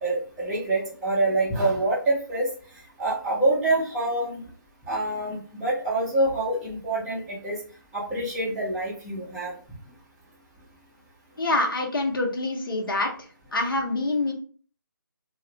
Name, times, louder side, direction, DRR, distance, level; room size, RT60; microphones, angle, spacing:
voice 1, 0.0-2.5 3.0-4.4 4.9-7.6 7.9-9.5, right 2 dB, 5° right, -9 dB, 0.4 m, -26 dB
voice 2, 11.4-13.1 13.5-14.3, left 2 dB, 70° left, 1 dB, 0.7 m, -25 dB
2.4 x 2.0 x 2.7 m, 0.42 s
figure-of-eight pair, 155°, 12 cm